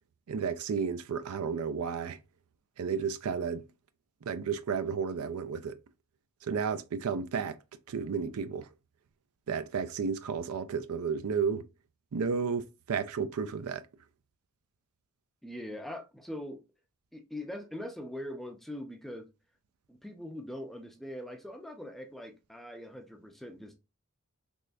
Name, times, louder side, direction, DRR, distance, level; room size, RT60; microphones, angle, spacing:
voice 1, 0.3-2.2 2.8-3.6 4.3-5.7 6.4-7.6 7.9-8.7 9.5-11.6 12.1-13.8, right 6 dB, 80° right, 0.4 m, -32 dB
voice 2, 15.4-16.6 17.1-19.3 19.9-23.8, left 1 dB, ahead, 0.4 m, -42 dB
3.5 x 3.2 x 2.5 m
head